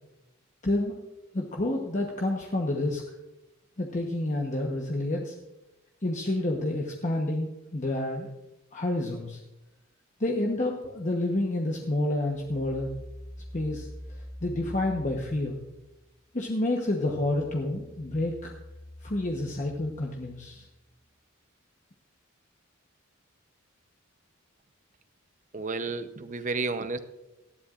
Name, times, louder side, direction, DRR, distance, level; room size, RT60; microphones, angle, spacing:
voice 1, 0.6-1.0 1.3-3.0 3.8-5.3 6.0-8.3 8.7-9.4 10.2-12.9 13.5-15.6 16.3-18.5 19.0-20.7, left 1 dB, 35° left, 0 dB, 1.0 m, -29 dB
sound 1, 12.3-16.2 16.6-21.1, equal, 5° left, 0.8 m, -46 dB
voice 2, 25.5-27.0, right 3 dB, 40° right, 10 dB, 0.7 m, -31 dB
18.5 x 13.0 x 2.5 m, 0.96 s
head